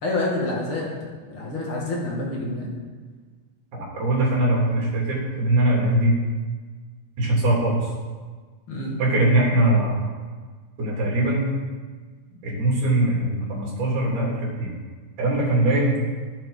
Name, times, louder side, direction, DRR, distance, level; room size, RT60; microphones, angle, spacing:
voice 1, 0.0-2.7 8.7-9.0 15.7-15.8, left 2 dB, 45° left, -4 dB, 2.6 m, -28 dB
voice 2, 3.7-6.2 7.2-7.9 9.0-10.0 10.8-11.5 12.4-14.7 15.2-16.0, right 1 dB, 75° right, -4 dB, 4.6 m, -21 dB
11.5 x 10.5 x 4.1 m, 1.5 s
omnidirectional pair, 3.6 m